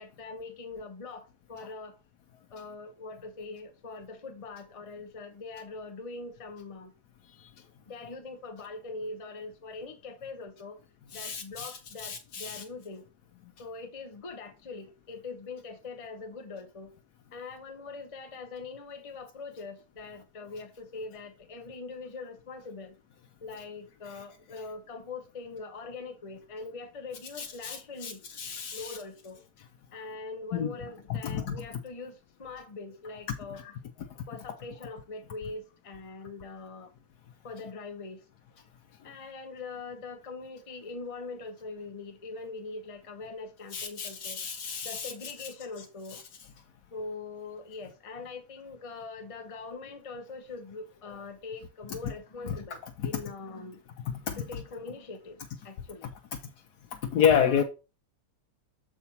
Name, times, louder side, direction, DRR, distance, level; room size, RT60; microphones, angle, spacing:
voice 1, 0.0-2.0 2.5-6.9 7.9-10.8 11.1-13.0 13.6-16.9 17.3-23.0 23.4-28.2 28.7-29.4 29.9-33.8 34.1-36.9 37.4-38.2 39.0-44.4 44.8-46.2 46.9-53.8 54.4-56.1 57.4-57.6, left 3 dB, 25° left, 0.8 m, -42 dB
voice 2, 11.1-11.7 12.0-12.6 27.4-28.1 28.4-29.0 30.5-30.7 31.1-31.5 43.7-45.1 54.3-54.4 57.1-57.6, left 8 dB, 90° left, 1.2 m, -29 dB
7.1 x 4.9 x 4.2 m
omnidirectional pair, 1.7 m